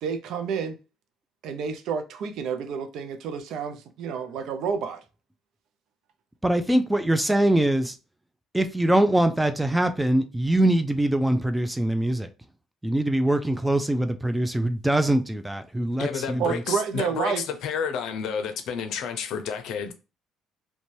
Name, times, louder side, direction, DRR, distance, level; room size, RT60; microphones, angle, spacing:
voice 1, 0.0-0.8 1.4-5.0 16.4-17.5, right 6 dB, 70° right, 0.4 m, -29 dB
voice 2, 6.4-7.9 8.5-12.3 12.8-16.4, right 1 dB, 10° right, 0.4 m, -23 dB
voice 3, 16.0-19.9, left 7 dB, 75° left, 0.5 m, -30 dB
2.6 x 2.2 x 3.1 m
supercardioid pair, 80°, 0 cm